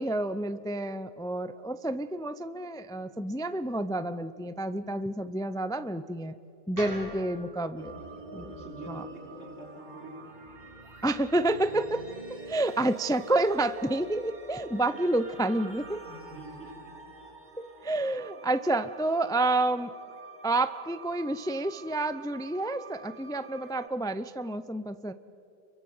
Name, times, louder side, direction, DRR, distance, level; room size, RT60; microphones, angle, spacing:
voice 1, 0.0-6.3 6.7-8.0 8.3-8.5 8.9-9.1 11.0-16.0 17.6-19.9 20.4-25.1, right 2 dB, 5° left, 12 dB, 0.4 m, -29 dB
sound 1, 6.8-10.9, equal, 15° right, 7.3 m, -46 dB
sound 2, 7.8-23.9, right 2 dB, 45° right, 2.6 m, -47 dB
voice 2, 8.4-10.1 16.1-16.9 18.2-18.3, right 2 dB, 80° right, 0 dB, 5.2 m, -45 dB
27.5 x 23.5 x 7.7 m, 2.7 s
omnidirectional pair, 1.1 m